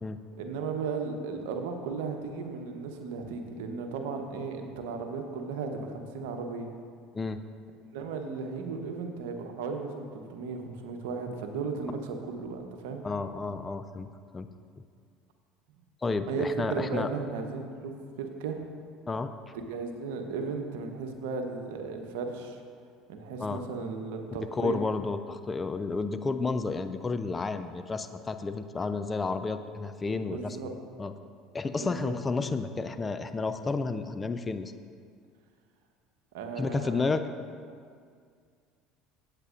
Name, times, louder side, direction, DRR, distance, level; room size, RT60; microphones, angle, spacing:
voice 1, 0.4-6.7 7.9-13.0 16.3-17.9 18.2-18.6 19.5-22.6 23.1-24.8 30.3-30.7 31.7-32.1 36.3-37.1, right 4 dB, 70° right, 4 dB, 1.0 m, -35 dB
voice 2, 13.0-14.1 14.3-14.5 16.0-17.1 19.1-19.3 23.4-23.6 24.5-30.6 31.0-31.1 31.5-34.7 36.6-37.2, left 3 dB, 25° left, 9 dB, 0.5 m, -31 dB
17.0 x 8.2 x 2.6 m, 2.1 s
hypercardioid pair, 70°, 0 cm